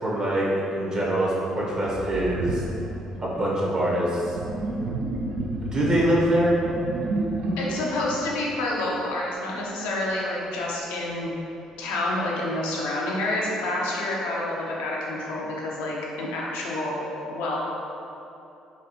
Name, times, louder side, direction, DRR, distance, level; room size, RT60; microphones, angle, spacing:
voice 1, 0.0-2.6 3.2-4.4 5.6-6.6, right 1 dB, 35° right, -6 dB, 1.1 m, -24 dB
Sink (filling or washing), 1.8-9.1, right 2 dB, 60° right, 0.4 m, -32 dB
voice 2, 7.6-11.3 11.8-17.6, left 1 dB, 75° left, -4 dB, 0.6 m, -28 dB
4.2 x 2.4 x 2.8 m, 2.9 s
hypercardioid pair, 50°, 2 cm